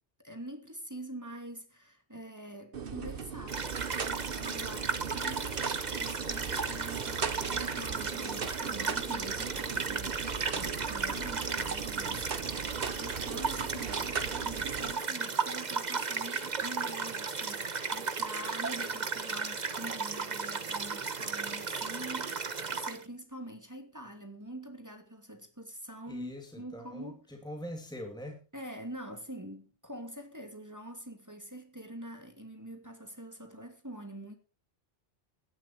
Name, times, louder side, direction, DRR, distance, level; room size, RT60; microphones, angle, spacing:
voice 1, 0.2-3.8 4.1-12.5 13.0-27.2 28.5-34.4, right 1 dB, 15° right, 2.7 m, -45 dB
sound 1, 2.7-14.9, right 6 dB, 55° right, 1.3 m, -39 dB
sound 2, 3.5-23.0, right 4 dB, 40° right, 1.2 m, -35 dB
voice 2, 26.1-28.4, equal, 5° left, 2.6 m, -43 dB
16.5 x 11.5 x 4.5 m
omnidirectional pair, 1.1 m